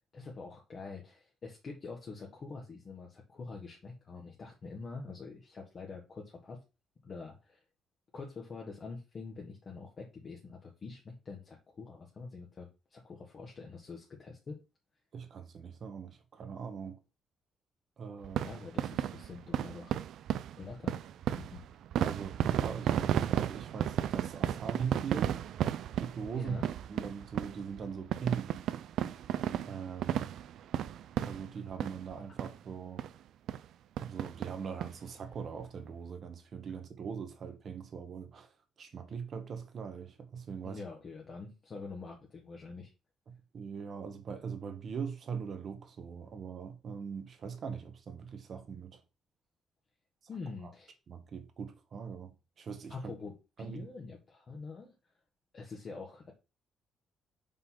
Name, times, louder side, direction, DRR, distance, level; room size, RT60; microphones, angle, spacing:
voice 1, 0.1-6.6 7.0-7.6 8.1-14.6 18.3-20.0 20.6-21.0 21.3-21.6 26.3-26.7 40.6-42.9 50.3-50.9 52.9-54.9 55.5-56.3, left 4 dB, 45° left, 1.5 m, -45 dB
voice 2, 15.1-17.0 18.0-18.4 22.0-25.7 26.0-26.6 26.9-28.5 29.6-30.3 31.2-33.0 34.0-38.5 38.8-40.8 43.3-49.0 50.6-50.7 51.1-53.1 53.6-53.8, right 6 dB, 55° right, 1.5 m, -41 dB
sound 1, 18.2-32.1 32.4-32.6 33.0-33.1 33.5-33.7 34.0-34.9 35.3-35.4 35.6-35.7, right 10 dB, 75° right, 0.4 m, -33 dB
5.4 x 4.0 x 5.7 m
cardioid pair, 90°, 0 cm